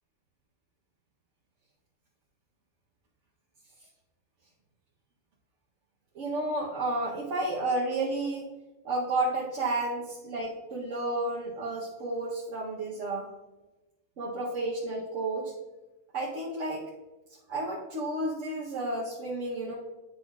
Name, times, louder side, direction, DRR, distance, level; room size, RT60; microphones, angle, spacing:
voice 1, 6.1-8.5 8.8-13.3 14.2-15.5 16.1-16.9 17.5-19.8, right 2 dB, 65° right, -5 dB, 1.2 m, -31 dB
9.6 x 5.5 x 2.3 m, 1.1 s
omnidirectional pair, 1.4 m